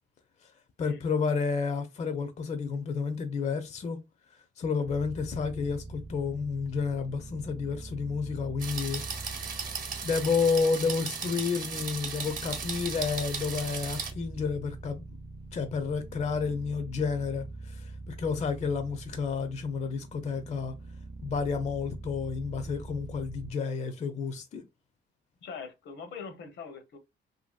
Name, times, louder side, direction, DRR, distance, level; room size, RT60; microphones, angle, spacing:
voice 1, 0.8-4.0 4.6-9.4 10.0-15.2 15.5-20.8 21.2-24.6, left 5 dB, 35° left, 0.5 m, -31 dB
sound 1, 4.8-23.5, right 2 dB, 25° right, 0.5 m, -44 dB
sound 2, 8.6-14.1, right 5 dB, 45° right, 0.9 m, -36 dB
voice 2, 25.4-27.0, left 5 dB, 70° left, 0.8 m, -42 dB
2.8 x 2.6 x 2.3 m
cardioid pair, 90°, 20 cm